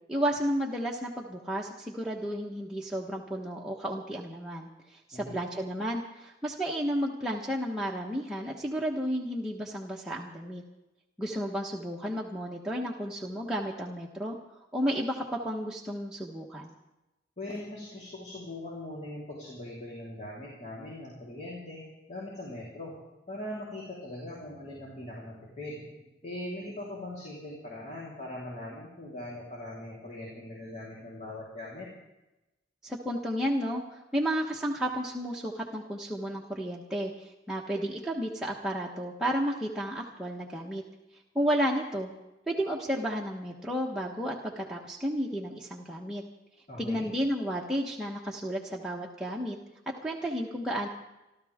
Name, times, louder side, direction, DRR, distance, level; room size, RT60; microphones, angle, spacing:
voice 1, 0.1-10.6 11.2-14.3 14.7-16.7 32.8-40.8 41.3-42.1 42.5-46.2 46.8-49.6 50.0-50.9, equal, 5° right, -3 dB, 1.2 m, -32 dB
voice 2, 17.4-22.9 23.3-25.9 26.2-31.9 46.7-47.1, left 1 dB, 40° left, -5 dB, 3.8 m, -41 dB
28.0 x 12.5 x 3.6 m, 0.97 s
head